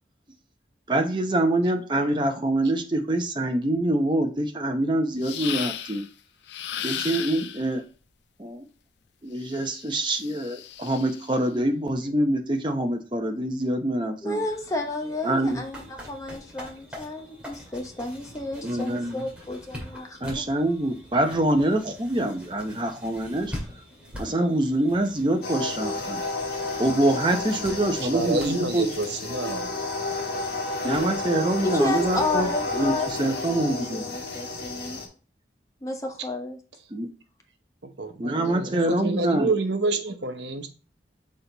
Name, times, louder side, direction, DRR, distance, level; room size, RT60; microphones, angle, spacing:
voice 1, 0.9-6.0 6.8-7.8 8.4-8.6 9.2-14.4 15.2-15.6 18.6-19.3 20.2-23.5 24.2-26.2 26.8-28.9 30.8-32.5 32.7-34.1 36.9-37.1 38.2-39.5, right 1 dB, 25° right, 5 dB, 0.8 m, -25 dB
sound 1, 5.2-6.1 6.5-7.7 9.4-11.3, left 10 dB, 80° left, 0.5 m, -35 dB
voice 2, 14.2-20.5 31.6-35.0 35.8-36.6, left 2 dB, 20° left, 3 dB, 0.9 m, -31 dB
sound 2, 14.4-33.2, left 1 dB, 5° right, 2.3 m, -44 dB
sound 3, 25.4-35.1, left 3 dB, 60° left, 1.6 m, -31 dB
voice 3, 28.1-29.6 34.3-34.4 38.0-40.7, right 3 dB, 80° right, 7 dB, 0.9 m, -28 dB
6.5 x 4.1 x 3.9 m, 0.36 s
head